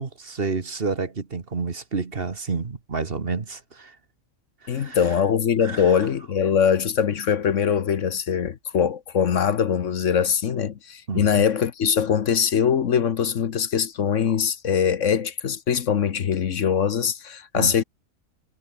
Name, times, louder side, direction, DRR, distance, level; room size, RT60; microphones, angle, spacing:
voice 1, 0.0-4.0 4.6-5.0 5.6-6.0 11.1-11.4 17.5-17.7, right 4 dB, 40° right, 1.7 m, -29 dB
voice 2, 4.7-17.8, left 7 dB, 60° left, 1.3 m, -22 dB
omnidirectional pair, 1.5 m